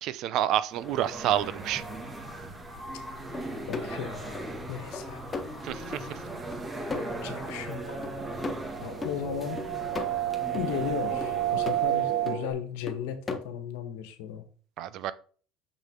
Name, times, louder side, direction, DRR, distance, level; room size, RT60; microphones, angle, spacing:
voice 1, 0.0-1.8 5.6-5.8 14.8-15.1, right 12 dB, 60° right, 0.7 m, -28 dB
sound 1, 0.7-12.3, right 1 dB, 20° right, 2.0 m, -39 dB
sound 2, 3.3-4.0 4.3-4.7 4.9-5.5 5.9-6.1 6.5-6.6 6.9-7.6 8.0-8.2 8.4-9.2 9.6-10.1 10.5-10.7 11.2-11.8 12.3-12.5 12.9-13.4, left 3 dB, 25° left, 1.3 m, -37 dB
voice 2, 3.7-5.2 7.0-8.1 8.8-9.6 10.5-14.4, left 9 dB, 75° left, 1.3 m, -36 dB
sound 3, 7.3-12.5, right 13 dB, 75° right, 1.5 m, -31 dB
6.5 x 6.3 x 3.7 m
supercardioid pair, 85°, 0 cm